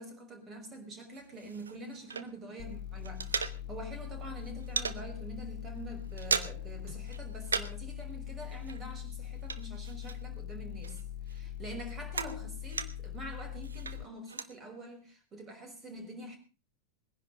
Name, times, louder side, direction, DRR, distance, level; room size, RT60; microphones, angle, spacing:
voice 1, 0.0-11.0 11.3-16.4, right 1 dB, 25° right, 5.6 m, -46 dB
tile cutter, 1.1-2.6 2.9-4.0 4.3-5.0 5.4-5.6 5.9-6.8 7.0-7.9 8.1-10.5 10.8-13.2 13.6-14.5, right 5 dB, 70° right, 1.1 m, -37 dB
sound 1, 1.3-8.3 8.8-8.9, right 2 dB, 45° right, 7.0 m, -65 dB
sound 2, 2.6-14.0, left 11 dB, 45° left, 0.7 m, -42 dB
20.5 x 10.5 x 5.2 m
figure-of-eight pair, 90°, 0 cm